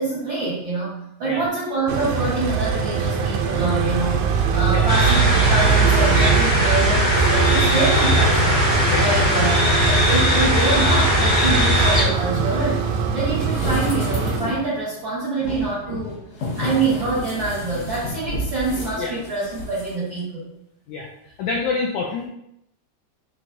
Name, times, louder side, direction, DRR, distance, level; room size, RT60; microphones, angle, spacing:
voice 1, 0.0-8.6 9.0-12.8 13.1-16.2 16.6-20.5, right 3 dB, 65° right, -10 dB, 1.2 m, -25 dB
sound 1, 1.9-14.4, right 6 dB, 85° right, 2.3 m, -22 dB
sound 2, 4.9-12.0, left 1 dB, 30° left, 0.9 m, -19 dB
sound 3, 13.4-14.7 15.4-19.9 20.2-20.3, equal, 65° left, 2.1 m, -30 dB
voice 2, 21.4-22.3, left 4 dB, 85° left, 0 dB, 1.6 m, -27 dB
5.6 x 3.0 x 2.6 m, 0.78 s
omnidirectional pair, 3.9 m